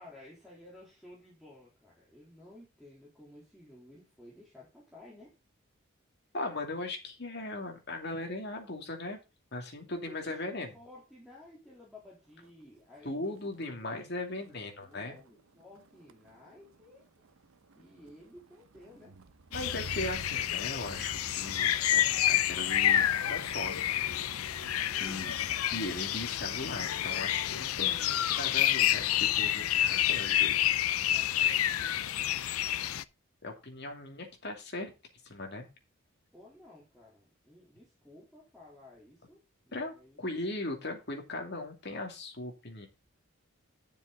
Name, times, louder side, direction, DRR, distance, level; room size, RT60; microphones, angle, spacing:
voice 1, 0.0-5.3 10.1-13.5 13.8-17.1 17.7-19.1 24.9-25.3 31.0-32.5 36.3-40.2, left 1 dB, ahead, -6 dB, 3.5 m, -54 dB
voice 2, 6.3-9.2 9.5-10.7 13.0-15.1 19.5-23.8 25.0-25.3 25.7-30.7 33.4-34.9 35.2-35.7 39.7-42.9, left 2 dB, 50° left, 3 dB, 2.5 m, -38 dB
Motor vehicle (road), 12.3-12.6 13.0-27.4 27.8-28.2, right 2 dB, 80° right, 0.8 m, -51 dB
sound 1, 19.5-33.0, left 11 dB, 90° left, 0.5 m, -29 dB
10.5 x 6.9 x 4.0 m, 0.28 s
head